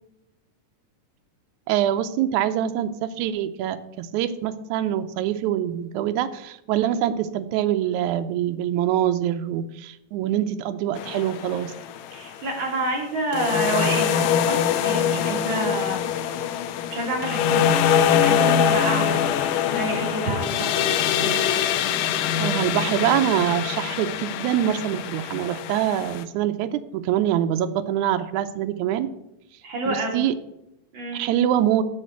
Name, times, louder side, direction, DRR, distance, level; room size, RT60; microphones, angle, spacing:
voice 1, 1.7-11.7 22.4-29.1 29.9-30.4 31.1-31.8, right 11 dB, 80° right, 8 dB, 1.9 m, -24 dB
sound 1, 11.0-12.4 13.3-26.2, left 8 dB, 85° left, 2.3 m, -24 dB
voice 2, 12.1-16.1 16.9-17.8 18.2-19.2 19.7-21.5 29.6-30.2 30.9-31.2, right 2 dB, 40° right, -1 dB, 2.6 m, -28 dB
7.6 x 7.2 x 6.7 m, 0.85 s
omnidirectional pair, 3.8 m